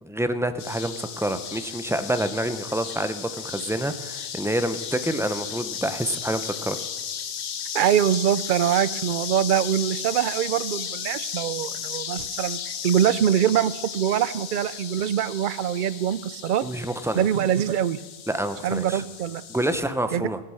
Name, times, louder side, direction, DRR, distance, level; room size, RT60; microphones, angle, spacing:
voice 1, 0.0-6.8 16.6-17.2 18.3-19.0 19.5-20.4, right 1 dB, 5° right, 10 dB, 0.5 m, -27 dB
sound 1, 0.6-19.8, left 8 dB, 85° left, 1.1 m, -35 dB
voice 2, 7.7-16.6 17.1-18.0 18.6-19.4 20.1-20.2, right 10 dB, 60° right, 17 dB, 0.6 m, -23 dB
15.5 x 9.8 x 6.3 m, 1.3 s
omnidirectional pair, 1.1 m